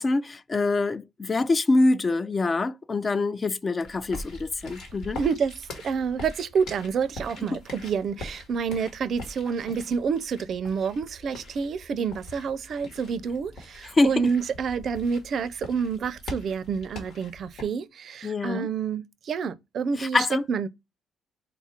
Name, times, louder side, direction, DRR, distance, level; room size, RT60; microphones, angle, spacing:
voice 1, 0.0-5.2 14.0-14.1 18.2-18.7 20.0-20.4, left 3 dB, 30° left, 0.3 m, -25 dB
sound 1, 3.8-17.6, left 2 dB, 80° left, 1.5 m, -43 dB
voice 2, 5.2-20.7, right 6 dB, 60° right, 0.4 m, -28 dB
3.9 x 2.4 x 4.2 m
cardioid pair, 90°, 0 cm